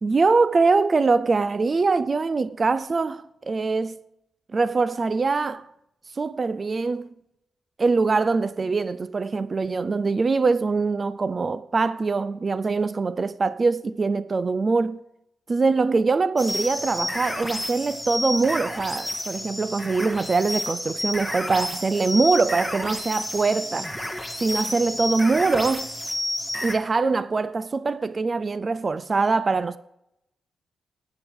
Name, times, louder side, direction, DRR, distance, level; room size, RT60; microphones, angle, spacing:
voice 1, 0.0-4.0 4.5-5.7 6.2-7.1 7.8-15.0 15.5-23.9 24.4-25.9 26.6-29.8, right 4 dB, 30° right, 0.4 m, -23 dB
sound 1, 16.4-26.7, left 1 dB, ahead, 1.6 m, -30 dB
18.5 x 8.9 x 3.6 m
wide cardioid pair, 150°, 0 cm